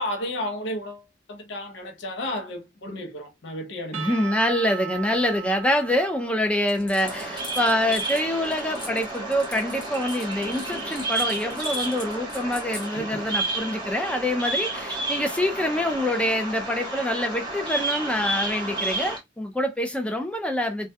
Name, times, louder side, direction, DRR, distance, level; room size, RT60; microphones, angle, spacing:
voice 1, 0.0-4.2 12.9-13.2, left 1 dB, 70° left, 0.6 m, -33 dB
voice 2, 3.9-20.9, left 1 dB, 5° left, 0.4 m, -25 dB
Percussion / Church bell, 3.9-7.9, right 9 dB, 90° right, 0.3 m, -38 dB
sound 1, 6.7-12.9, left 2 dB, 25° left, 1.0 m, -41 dB
Bird vocalization bird call bird song, 7.0-19.2, right 2 dB, 25° right, 0.7 m, -31 dB
2.2 x 2.2 x 2.6 m
head